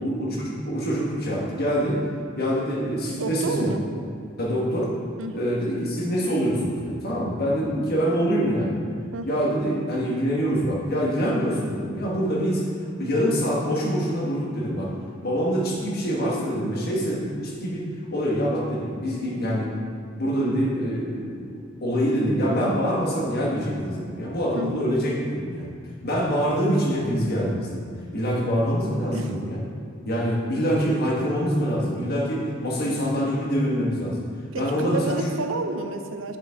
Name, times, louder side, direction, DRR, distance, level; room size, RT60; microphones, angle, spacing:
voice 1, 0.0-2.0 2.4-3.7 4.4-4.9 5.3-8.8 9.2-12.6 13.0-14.9 15.2-19.7 20.2-25.7 26.0-27.9 28.1-29.6 30.0-34.2 34.5-35.2, equal, 50° left, -4 dB, 1.5 m, -25 dB
voice 2, 3.2-3.9 5.2-5.5 9.1-9.4 24.5-24.9 29.1-29.3 32.8-33.1 34.5-36.4, right 3 dB, 75° right, 6 dB, 0.6 m, -31 dB
7.1 x 6.6 x 3.6 m, 2.3 s
head